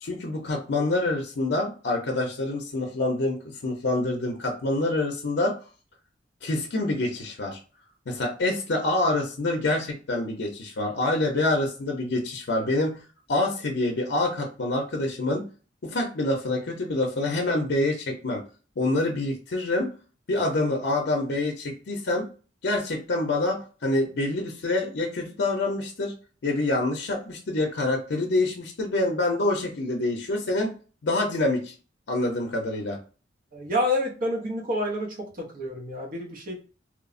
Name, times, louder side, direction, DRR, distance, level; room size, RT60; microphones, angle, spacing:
voice 1, 0.0-3.4 3.6-5.6 6.4-7.6 8.1-13.0 13.3-15.4 15.8-18.4 18.8-19.9 20.3-22.2 22.6-26.1 26.4-30.7 31.0-31.7 32.1-33.0, left 2 dB, 65° left, 1 dB, 0.5 m, -26 dB
voice 2, 33.5-36.6, left 1 dB, 50° right, -1 dB, 0.6 m, -28 dB
3.1 x 2.0 x 2.4 m, 0.36 s
head